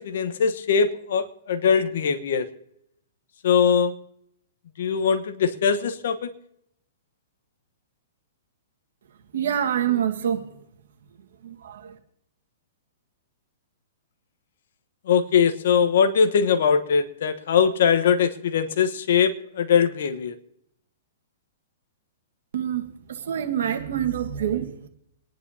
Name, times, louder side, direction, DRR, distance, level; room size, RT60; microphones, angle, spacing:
voice 1, 0.0-2.5 3.4-3.9 4.8-6.3 15.1-20.3, left 6 dB, 65° left, 9 dB, 1.2 m, -21 dB
voice 2, 9.3-10.5 11.4-11.9 22.5-22.8 23.1-24.9, right 9 dB, 75° right, 5 dB, 1.6 m, -26 dB
25.0 x 10.5 x 2.8 m, 0.76 s
hypercardioid pair, 150°, 0 cm